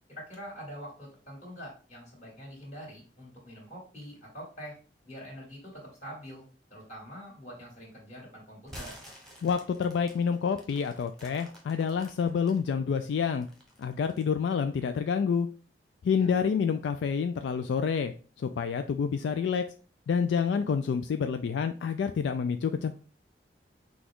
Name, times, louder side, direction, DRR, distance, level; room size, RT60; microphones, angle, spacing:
voice 1, 0.1-4.8 5.0-6.5 6.7-9.0 16.1-16.4, equal, 40° left, -4 dB, 2.3 m, -45 dB
sound 1, 8.6-12.6 13.0-14.3, equal, ahead, 1.1 m, -49 dB
voice 2, 9.4-13.5 13.8-15.5 16.0-18.1 18.4-19.6 20.1-22.9, left 6 dB, 75° left, 8 dB, 0.3 m, -28 dB
6.1 x 2.3 x 3.5 m, 0.38 s
head